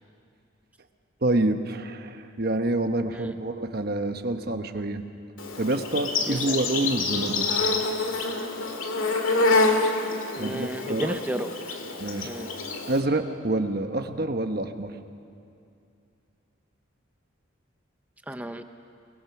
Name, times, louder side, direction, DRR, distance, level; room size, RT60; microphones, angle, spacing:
voice 1, 1.2-5.0 5.6-7.5 10.4-11.2 12.0-12.3 12.9-14.9, right 2 dB, 50° right, 7 dB, 1.1 m, -27 dB
Insect, 5.4-13.0, left 3 dB, 85° left, 2.0 m, -27 dB
voice 2, 10.4-11.8 12.2-12.5 18.3-18.6, right 1 dB, 5° right, 7 dB, 0.6 m, -32 dB
28.5 x 20.5 x 6.0 m, 2.5 s
head